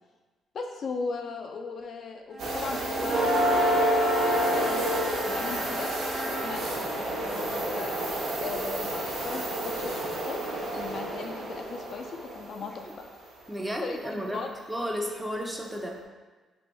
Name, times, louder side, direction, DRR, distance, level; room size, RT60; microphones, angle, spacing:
voice 1, 0.5-5.9 6.3-7.9 8.4-9.9 10.3-10.4 10.7-12.9 13.8-14.5, left 4 dB, 55° left, 3 dB, 0.4 m, -38 dB
Bowed string instrument, 2.3-6.7, equal, 40° right, 0.9 m, -38 dB
sound 1, 2.4-13.0 15.0-15.1 15.7-15.8, right 1 dB, 80° right, 0.8 m, -28 dB
voice 2, 13.5-16.0, equal, 10° right, 1 dB, 0.5 m, -33 dB
3.2 x 2.5 x 4.1 m, 1.3 s
cardioid pair, 90°, 0 cm